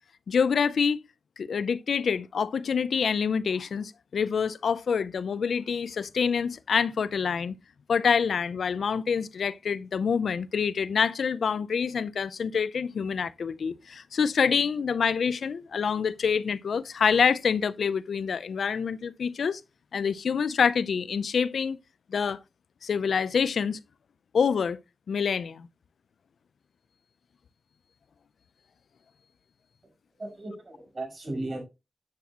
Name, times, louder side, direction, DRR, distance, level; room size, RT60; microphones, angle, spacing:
voice 1, 0.3-1.0 1.4-7.6 7.9-19.6 19.9-21.8 22.1-22.4 22.8-23.8 24.3-24.8 25.1-25.7, left 6 dB, 80° left, 0.4 m, -26 dB
voice 2, 29.8-31.6, right 2 dB, 50° right, 5.5 m, -36 dB
9.6 x 7.2 x 2.8 m
cardioid pair, 50°, 0 cm